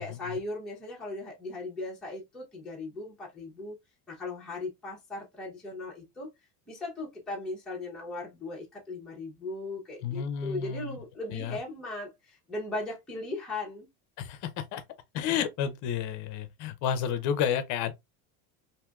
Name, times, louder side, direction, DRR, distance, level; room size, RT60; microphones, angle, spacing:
voice 1, 0.0-3.8 4.1-6.3 6.7-13.9, left 2 dB, ahead, 0.7 m, -38 dB
voice 2, 10.0-11.0 11.3-11.6 14.2-14.8 15.1-17.9, left 8 dB, 50° left, 0.6 m, -31 dB
3.3 x 2.6 x 2.3 m
cardioid pair, 165°, 40 cm